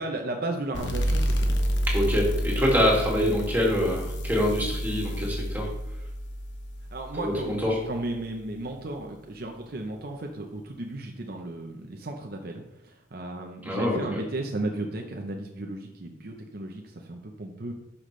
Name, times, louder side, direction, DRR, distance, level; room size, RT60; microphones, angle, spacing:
voice 1, 0.0-1.6 6.9-17.7, right 2 dB, 55° right, 2 dB, 0.8 m, -35 dB
sound 1, 0.7-8.0, equal, 65° left, 1.0 m, -29 dB
voice 2, 1.9-5.7 7.1-7.8 13.6-14.2, equal, 10° right, -2 dB, 2.2 m, -25 dB
11.5 x 5.8 x 3.2 m, 0.87 s
head